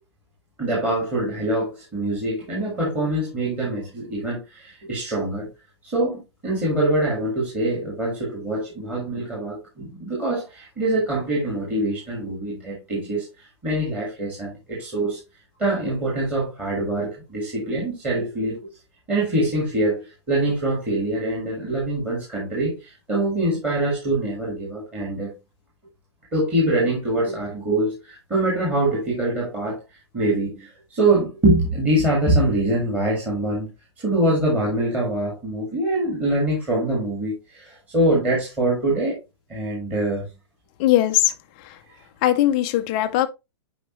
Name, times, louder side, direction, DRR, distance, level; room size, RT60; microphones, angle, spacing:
voice 1, 0.6-5.5 5.8-15.2 15.6-18.7 19.1-25.3 26.3-29.8 30.1-33.7 34.0-39.2 39.5-40.3, right 1 dB, 10° right, 1.8 m, -24 dB
voice 2, 40.8-41.3 42.2-43.3, left 14 dB, 20° left, 0.5 m, -19 dB
8.1 x 5.1 x 3.0 m
hypercardioid pair, 175°, 14 cm